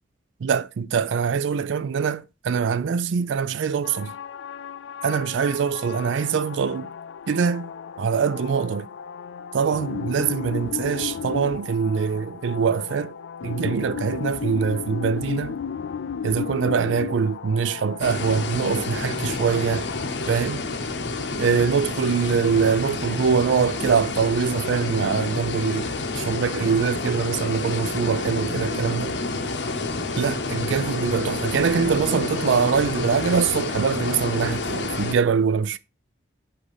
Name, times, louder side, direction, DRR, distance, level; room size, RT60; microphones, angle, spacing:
voice 1, 0.4-4.1 5.0-6.9 7.3-7.7 8.0-8.9 9.5-13.1 13.4-15.6 16.2-19.9 20.3-20.6 21.4-29.2 30.2-35.8, right 6 dB, 85° right, 0.4 m, -23 dB
sound 1, 3.8-20.1, left 7 dB, 85° left, 0.4 m, -34 dB
sound 2, 18.0-35.1, left 3 dB, 65° left, 0.9 m, -29 dB
8.1 x 2.7 x 5.4 m
head